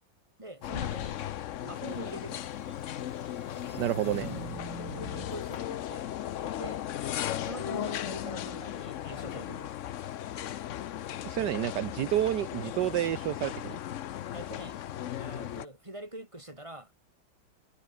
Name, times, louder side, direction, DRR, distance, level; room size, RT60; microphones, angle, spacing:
voice 1, 0.4-1.2 1.6-2.5 3.7-4.4 4.9-6.1 6.6-6.8 7.4-9.7 11.4-11.7 14.3-14.8 15.2-16.9, right 1 dB, 15° right, 4.8 m, -44 dB
sound 1, 0.6-15.7, left 11 dB, 80° left, 0.6 m, -37 dB
sound 2, 1.9-5.6, right 2 dB, 90° right, 8.2 m, -46 dB
voice 2, 3.8-4.3 11.2-13.8, right 12 dB, 65° right, 1.4 m, -29 dB
omnidirectional pair, 2.1 m